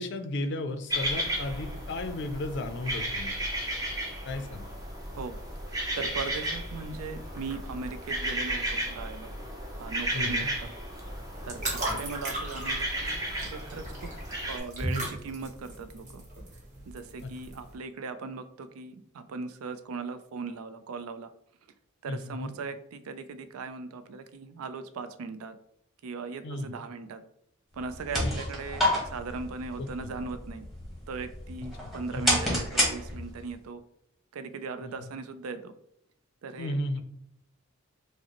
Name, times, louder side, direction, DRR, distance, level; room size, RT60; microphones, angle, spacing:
voice 1, 0.0-3.4 4.2-4.7 10.1-10.5 11.9-12.0 17.2-17.3 22.1-22.5 26.4-26.7 28.2-28.4 29.8-29.9 32.1-32.3 34.8-35.1 36.6-37.0, left 1 dB, 55° left, 8 dB, 0.4 m, -34 dB
sound 1, 0.9-14.6, right 1 dB, 15° right, 0.5 m, -34 dB
voice 2, 5.7-9.3 9.8-10.7 11.4-13.1 13.4-14.1 14.5-16.2 16.9-21.3 22.0-25.5 26.0-27.2 27.7-30.6 31.1-33.8 34.3-35.7 36.4-37.0, right 4 dB, 85° right, 10 dB, 0.4 m, -39 dB
sound 2, 11.0-17.7, right 1 dB, 35° right, 1.1 m, -36 dB
sound 3, 27.8-33.5, left 1 dB, ahead, 1.0 m, -30 dB
4.9 x 2.0 x 2.9 m, 0.72 s
head